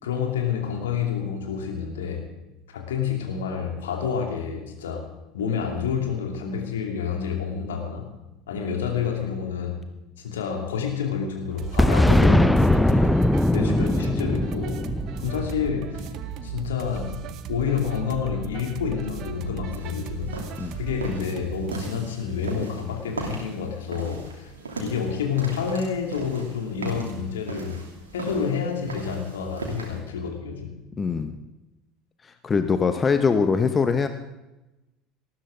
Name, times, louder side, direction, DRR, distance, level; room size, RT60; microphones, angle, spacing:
voice 1, 0.0-2.2 2.7-5.0 5.3-8.1 8.5-9.8 10.2-13.2 13.5-14.8 15.2-16.1 16.4-17.2 17.5-20.4 20.8-24.5 24.8-27.8 28.1-30.7, left 7 dB, 70° left, 1 dB, 2.9 m, -28 dB
sound 1, 11.6-22.2, right 9 dB, 45° right, 0.9 m, -36 dB
Boom, 11.8-16.5, left 1 dB, 5° left, 0.5 m, -20 dB
sound 2, 19.7-30.0, right 3 dB, 75° right, 2.8 m, -37 dB
voice 2, 31.0-31.4 32.2-34.1, left 5 dB, 25° left, 8 dB, 1.0 m, -22 dB
19.0 x 14.0 x 3.9 m, 1.0 s
figure-of-eight pair, 70°, 0 cm